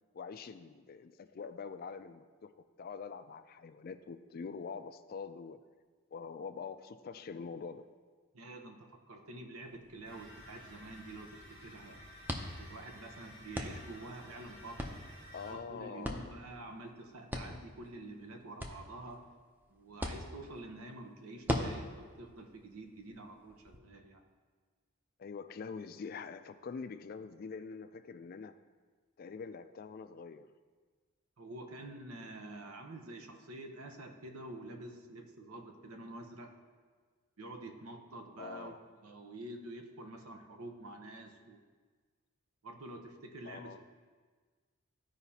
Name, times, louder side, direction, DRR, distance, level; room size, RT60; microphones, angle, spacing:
voice 1, 0.1-2.5 2.8-5.6 6.1-7.9 15.3-16.3 25.2-28.6 29.2-30.5 38.4-38.8 43.4-43.8, left 5 dB, 45° left, 10 dB, 0.3 m, -45 dB
voice 2, 8.3-12.0 12.4-15.0 15.4-19.2 19.7-24.2 31.4-36.5 37.4-38.7 39.0-41.6 42.6-43.8, right 2 dB, 80° right, 3 dB, 0.9 m, -48 dB
sound 1, 9.6-23.8, equal, 10° right, 0.5 m, -43 dB
sound 2, 10.0-15.5, equal, 50° right, 2.4 m, -53 dB
14.0 x 4.9 x 2.8 m, 1.5 s
head